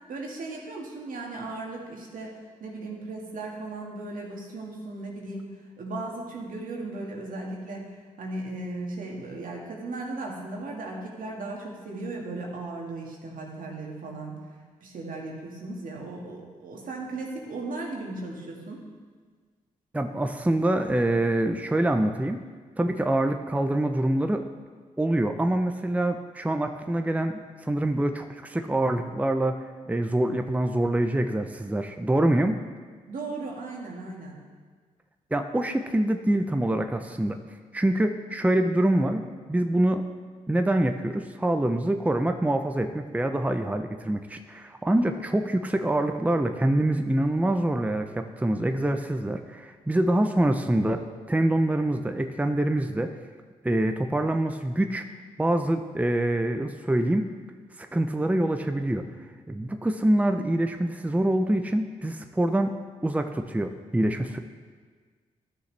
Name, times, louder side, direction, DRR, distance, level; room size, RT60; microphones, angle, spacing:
voice 1, 0.1-14.4 14.8-18.8 33.1-34.4, right 2 dB, 70° right, -1 dB, 1.9 m, -36 dB
voice 2, 19.9-22.4 22.8-24.4 25.0-29.6 29.9-32.6 35.3-37.4 37.7-39.2 39.5-40.0 40.5-51.0 51.3-53.1 53.6-55.0 55.4-57.2 57.8-59.1 59.5-62.7 63.0-64.4, right 1 dB, 10° right, 7 dB, 0.7 m, -25 dB
13.0 x 6.5 x 3.3 m, 1.5 s
supercardioid pair, 50°, 15 cm